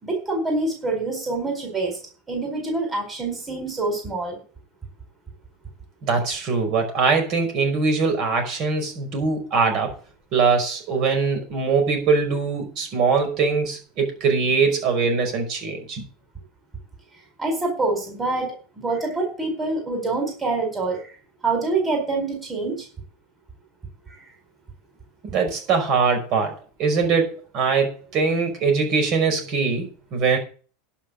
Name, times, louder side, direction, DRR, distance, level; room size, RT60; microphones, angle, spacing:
voice 1, 0.0-2.0 2.3-4.4 17.4-21.1 21.4-22.9, right 3 dB, 15° right, 4.4 m, -26 dB
voice 2, 6.0-9.9 10.3-16.0 25.3-26.5 26.8-30.4, right 5 dB, 45° right, 5.6 m, -22 dB
11.0 x 6.0 x 8.6 m
supercardioid pair, 145°, 0 cm